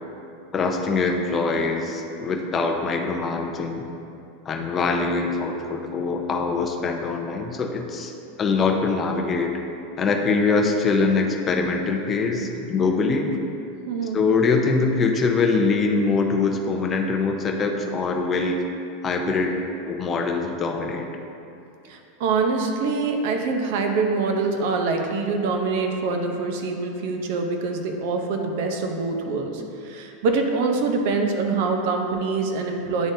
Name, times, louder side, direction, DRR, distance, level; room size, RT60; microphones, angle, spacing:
voice 1, 0.5-3.8 4.5-8.1 8.4-9.5 10.0-13.3 14.1-18.6 19.0-19.5 19.8-21.1, left 4 dB, 20° left, 2 dB, 0.6 m, -23 dB
voice 2, 13.9-14.2 21.8-33.1, right 4 dB, 60° right, 3 dB, 0.7 m, -25 dB
9.9 x 3.8 x 2.7 m, 2.7 s
supercardioid pair, 150°, 0 cm